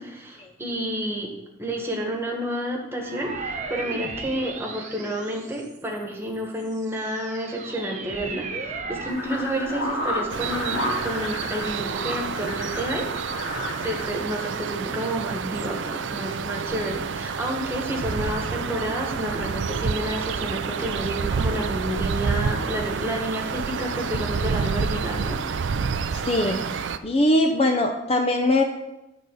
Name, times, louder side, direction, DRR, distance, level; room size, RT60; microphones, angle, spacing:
voice 1, 0.0-1.3 1.6-13.1 13.4-25.4, equal, 15° right, 0 dB, 1.4 m, -30 dB
sound 1, 3.0-5.9 6.5-9.4, right 4 dB, 40° right, 0.9 m, -35 dB
sound 2, 9.1-14.1, equal, 85° left, 2.6 m, -31 dB
sound 3, 10.3-27.0, right 5 dB, 75° right, 0.4 m, -29 dB
voice 2, 26.3-28.6, left 1 dB, 30° left, 5 dB, 0.6 m, -21 dB
10.0 x 4.1 x 6.4 m, 0.96 s
head